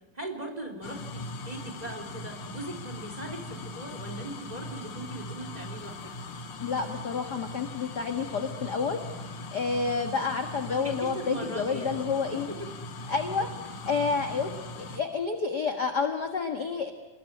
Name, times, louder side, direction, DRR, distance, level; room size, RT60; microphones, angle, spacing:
voice 1, 0.1-6.0 10.7-12.0 12.3-12.7, right 2 dB, 10° right, 4 dB, 3.8 m, -39 dB
sound 1, 0.8-15.0, left 2 dB, 70° left, 3.6 m, -40 dB
voice 2, 6.6-12.5 13.1-13.5 13.9-16.9, left 5 dB, 40° left, 5 dB, 1.7 m, -29 dB
29.5 x 20.5 x 9.8 m, 1.1 s
omnidirectional pair, 3.6 m